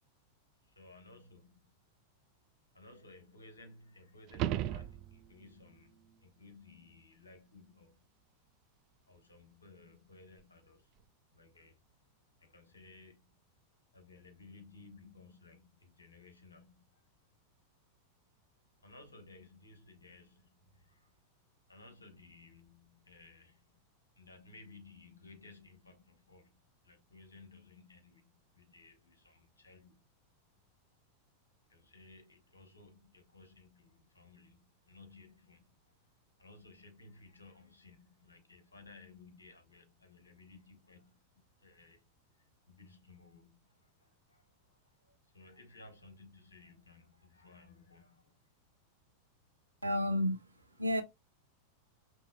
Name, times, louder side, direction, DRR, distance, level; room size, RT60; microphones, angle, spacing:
voice 1, 0.6-1.7 2.7-8.0 9.1-10.9 11.3-11.8 12.4-13.3 13.9-17.0 18.8-21.1 21.7-23.8 24.2-30.1 31.7-35.9 36.4-41.2 41.6-42.0 42.4-48.4, left 3 dB, 75° left, 1.3 m, -58 dB
sound 1, 4.3-5.5 10.4-10.5, right 13 dB, 40° right, 0.3 m, -35 dB
voice 2, 49.8-50.4 50.8-51.0, left 1 dB, 85° right, 0.7 m, -30 dB
5.2 x 3.3 x 2.2 m
figure-of-eight pair, 90°, 0 cm